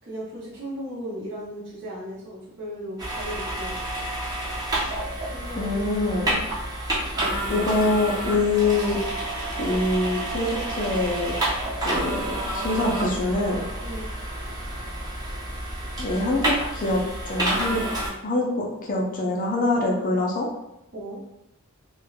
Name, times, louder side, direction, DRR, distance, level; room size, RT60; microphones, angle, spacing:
voice 1, 0.0-3.8 5.2-6.3 13.8-14.1 20.9-21.2, equal, 55° right, -9 dB, 0.7 m, -36 dB
sound 1, 3.0-18.1, right 1 dB, 20° right, 0.6 m, -29 dB
voice 2, 5.6-6.4 7.5-9.0 9.6-11.3 11.8-13.6 16.0-17.8 18.2-20.5, left 2 dB, 40° left, -1 dB, 0.5 m, -25 dB
3.1 x 2.1 x 2.3 m, 0.84 s
head